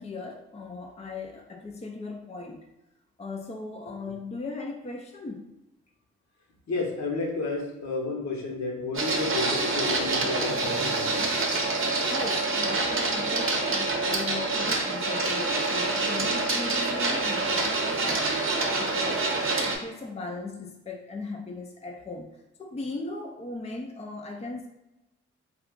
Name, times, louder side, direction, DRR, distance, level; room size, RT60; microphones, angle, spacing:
voice 1, 0.0-2.7 3.2-5.5 12.1-24.7, left 3 dB, 20° left, 1 dB, 0.5 m, -38 dB
voice 2, 6.7-11.4, left 3 dB, 60° left, -1 dB, 1.0 m, -32 dB
Printer, 8.9-19.8, right 3 dB, 40° right, 0.8 m, -26 dB
2.4 x 2.3 x 3.7 m, 0.96 s
supercardioid pair, 45°, 31 cm